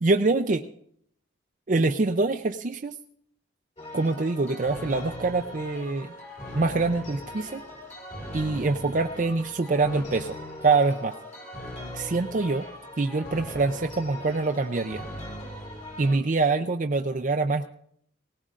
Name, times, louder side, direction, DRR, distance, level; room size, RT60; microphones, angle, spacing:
voice 1, 0.0-0.6 1.7-2.9 3.9-6.1 6.5-7.6 8.3-10.4 10.6-11.1 11.9-12.7 13.0-15.0 16.0-17.7, right 3 dB, 40° right, 6 dB, 0.5 m, -25 dB
sound 1, 3.8-16.2, left 1 dB, 35° left, 2.0 m, -40 dB
20.0 x 18.0 x 2.5 m, 0.67 s
head